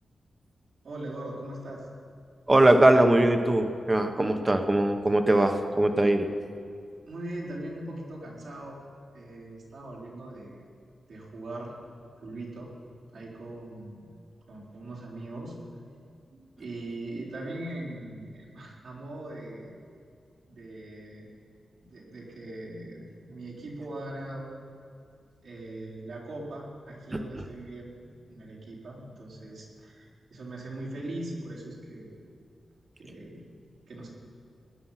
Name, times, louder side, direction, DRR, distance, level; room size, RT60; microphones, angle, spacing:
voice 1, 0.8-1.9 7.1-8.8 9.1-10.6 11.1-11.7 12.2-12.7 13.1-14.1 14.5-15.6 16.3-19.7 20.5-21.3 21.8-24.6 25.4-32.1 33.0-33.4 33.9-34.1, right 1 dB, 70° right, -5 dB, 4.2 m, -40 dB
voice 2, 2.5-6.3, right 1 dB, 20° right, 6 dB, 1.0 m, -21 dB
19.5 x 10.5 x 5.8 m, 2.3 s
wide cardioid pair, 125°, 0 cm